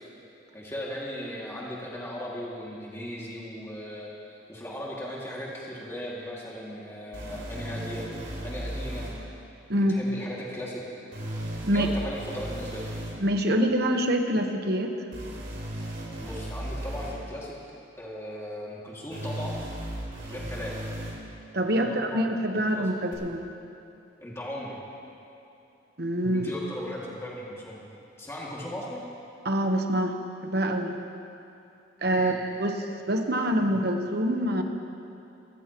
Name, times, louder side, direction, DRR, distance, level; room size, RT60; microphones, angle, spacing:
voice 1, 0.5-4.1 4.5-8.1 8.4-9.1 9.9-10.8 11.7-12.9 16.2-17.5 18.0-19.7 20.2-20.8 21.7-22.3 22.5-22.9 24.2-24.8 26.3-27.8 28.2-29.0 32.1-32.4, equal, 15° left, -6 dB, 2.3 m, -37 dB
sound 1, 7.1-9.1 11.1-13.1 15.1-17.1 19.1-21.1 23.1-23.2, right 1 dB, 80° right, 4.3 m, -35 dB
voice 2, 13.2-14.9 21.5-23.4 26.0-26.5 29.4-30.1 30.4-30.9 32.0-32.3 32.6-34.6, right 1 dB, 55° right, 4 dB, 1.2 m, -25 dB
25.0 x 14.5 x 3.1 m, 2.8 s
head